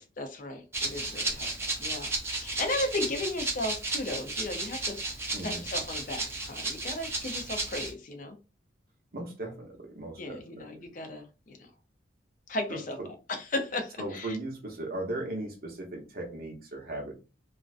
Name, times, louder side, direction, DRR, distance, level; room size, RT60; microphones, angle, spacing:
voice 1, 0.0-1.5 1.8-5.0 5.4-8.4 10.2-11.7 12.5-13.0 13.3-14.4, left 2 dB, 50° left, 6 dB, 0.5 m, -35 dB
Rattle (instrument), 0.7-7.9, right 2 dB, 15° right, 0.6 m, -34 dB
voice 2, 9.1-10.8 12.7-12.8 14.0-17.1, right 1 dB, 55° right, 0 dB, 0.7 m, -37 dB
2.5 x 2.1 x 2.4 m, 0.32 s
head